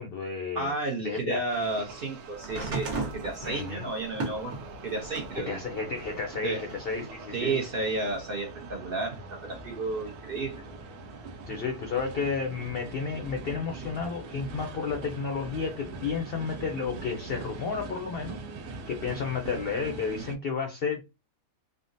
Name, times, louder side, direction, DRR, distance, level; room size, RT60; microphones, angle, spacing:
voice 1, 0.0-0.7 1.0-1.4 3.4-3.8 5.4-7.6 11.5-18.4 18.7-21.0, left 5 dB, 70° left, 0.5 m, -32 dB
voice 2, 0.5-5.6 6.4-6.6 7.3-10.6, right 3 dB, 55° right, 0.6 m, -32 dB
sound 1, 1.5-20.4, right 3 dB, 90° right, 1.1 m, -42 dB
sound 2, 2.4-5.4 5.9-7.1 8.1-8.2, right 3 dB, 75° right, 1.3 m, -36 dB
3.6 x 2.1 x 2.5 m
omnidirectional pair, 1.6 m